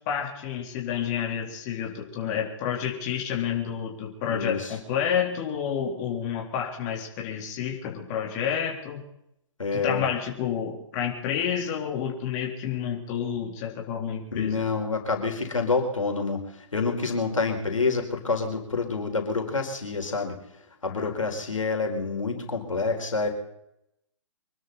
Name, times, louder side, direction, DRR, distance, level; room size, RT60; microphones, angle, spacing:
voice 1, 0.1-9.0 9.7-14.6 21.0-21.1, left 8 dB, 35° left, 0 dB, 3.8 m, -29 dB
voice 2, 4.3-4.7 9.6-10.0 14.3-20.4 20.8-23.3, left 4 dB, 85° left, 3 dB, 4.5 m, -27 dB
25.5 x 12.5 x 4.2 m, 0.80 s
hypercardioid pair, 135°, 16 cm